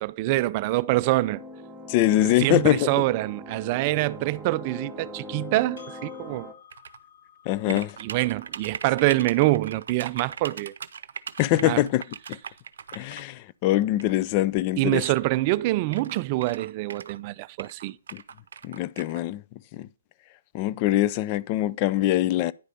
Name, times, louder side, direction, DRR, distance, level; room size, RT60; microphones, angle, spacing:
voice 1, 0.0-1.4 2.2-6.5 7.7-10.7 11.6-11.8 14.8-18.0, right 18 dB, 35° right, 0.4 m, -25 dB
sound 1, 1.2-6.5, left 1 dB, 5° right, 1.6 m, -41 dB
voice 2, 1.9-2.9 7.5-8.0 11.4-12.0 12.3-12.4 12.9-15.0 18.1-18.2 18.6-19.4 19.7-19.9 20.5-22.5, left 14 dB, 35° left, 0.4 m, -23 dB
Percussion, 5.8-10.6, left 8 dB, 65° left, 5.0 m, -54 dB
sound 2, 6.7-7.0 7.7-13.2 14.0-14.1 15.0-15.1 15.3-15.4 15.9-17.2 17.6-19.2, right 7 dB, 70° right, 0.6 m, -40 dB
10.0 x 5.0 x 5.5 m
hypercardioid pair, 140°, 0 cm